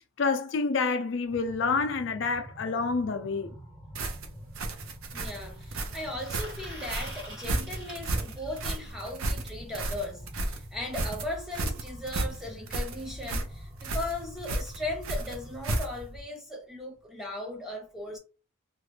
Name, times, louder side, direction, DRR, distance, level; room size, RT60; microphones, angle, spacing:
voice 1, 0.2-3.5, left 4 dB, 60° left, 0.4 m, -28 dB
sound 1, 1.2-16.2, equal, 35° right, 1.6 m, -46 dB
sound 2, 3.1-3.2 5.1-8.9 10.8-10.9 11.2-11.3 11.6-11.7 12.6-12.7, equal, 55° right, 1.6 m, -46 dB
sound 3, 3.9-16.2, right 2 dB, 80° right, 0.6 m, -33 dB
voice 2, 5.1-18.2, left 1 dB, ahead, 0.6 m, -38 dB
2.9 x 2.5 x 3.1 m
head